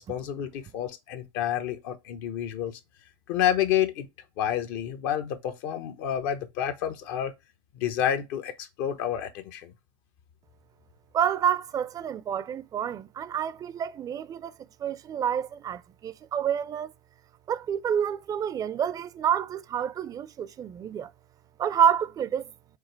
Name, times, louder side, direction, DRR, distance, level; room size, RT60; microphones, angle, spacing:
voice 1, 0.0-2.8 3.3-4.1 4.4-7.3 7.7-9.7, left 10 dB, 65° left, 0.8 m, -29 dB
voice 2, 11.1-14.5 14.8-16.9 17.5-21.1 21.6-22.5, right 8 dB, 30° right, 0.4 m, -28 dB
4.9 x 2.0 x 4.4 m
supercardioid pair, 105°, 13 cm